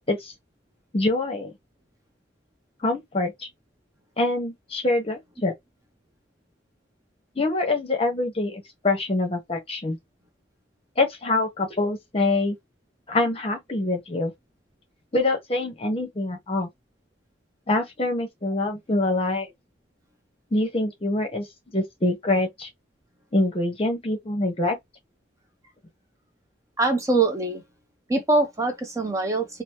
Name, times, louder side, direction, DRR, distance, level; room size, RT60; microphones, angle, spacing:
voice 1, 0.9-1.5 2.8-3.3 4.2-5.5 7.4-10.0 11.0-12.6 13.1-14.3 15.1-16.7 17.7-19.5 20.5-21.5 21.7-22.7 23.3-24.8, left 2 dB, 35° left, 0.9 m, -25 dB
voice 2, 26.8-27.6 28.1-29.6, right 2 dB, 20° right, 0.5 m, -23 dB
2.9 x 2.0 x 2.9 m
head